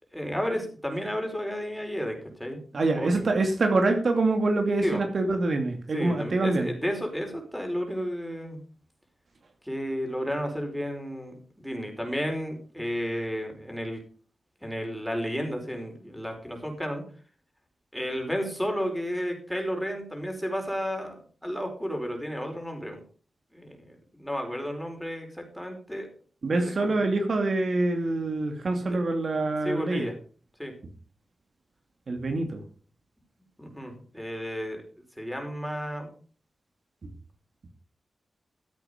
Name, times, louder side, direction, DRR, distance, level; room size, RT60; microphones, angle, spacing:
voice 1, 0.1-2.6 2.9-3.3 4.8-5.0 5.9-8.6 9.6-14.0 14.6-17.0 17.9-23.0 23.5-26.1 26.5-26.9 28.9-29.0 29.6-30.1 30.6-30.7 33.6-34.8 35.2-36.1, equal, ahead, 3 dB, 5.0 m, -32 dB
voice 2, 2.7-6.7 26.4-30.1 32.1-32.6 37.0-37.1, right 2 dB, 60° right, 5 dB, 2.5 m, -25 dB
14.5 x 8.3 x 5.2 m, 0.40 s
wide cardioid pair, 75°, 0 cm